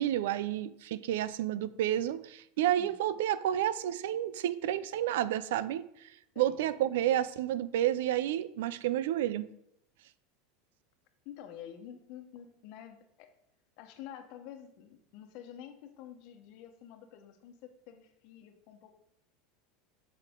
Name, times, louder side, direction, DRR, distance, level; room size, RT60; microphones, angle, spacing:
voice 1, 0.0-5.9 6.4-9.5, right 12 dB, 80° right, 16 dB, 0.4 m, -30 dB
voice 2, 11.2-13.3 13.8-19.0, left 10 dB, 60° left, 6 dB, 1.1 m, -49 dB
8.0 x 5.7 x 3.7 m, 0.76 s
supercardioid pair, 120°, 0 cm